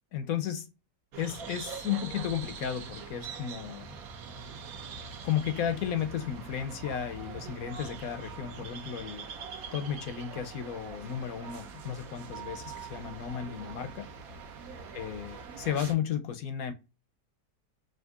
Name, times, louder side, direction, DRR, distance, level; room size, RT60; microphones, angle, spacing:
voice 1, 0.1-0.7 1.2-3.9 5.2-9.3 9.7-14.1 14.9-16.7, left 9 dB, 70° left, 0.9 m, -34 dB
sound 1, 1.1-15.9, right 5 dB, 65° right, 1.1 m, -43 dB
6.2 x 2.6 x 2.3 m
omnidirectional pair, 1.8 m